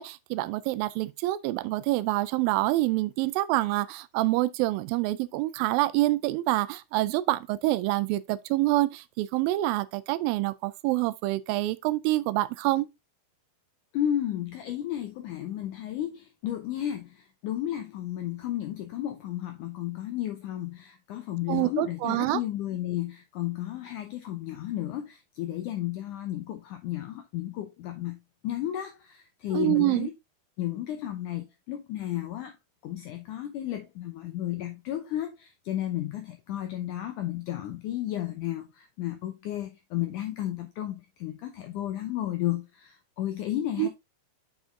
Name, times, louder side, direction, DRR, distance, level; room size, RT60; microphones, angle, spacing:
voice 1, 0.0-12.9 21.5-22.4 29.5-30.1 43.8-43.9, right 17 dB, 85° right, 2.0 m, -26 dB
voice 2, 13.9-28.2 28.4-30.1 30.6-32.6 32.8-43.9, left 12 dB, 80° left, 1.8 m, -33 dB
7.6 x 5.2 x 3.6 m
omnidirectional pair, 4.6 m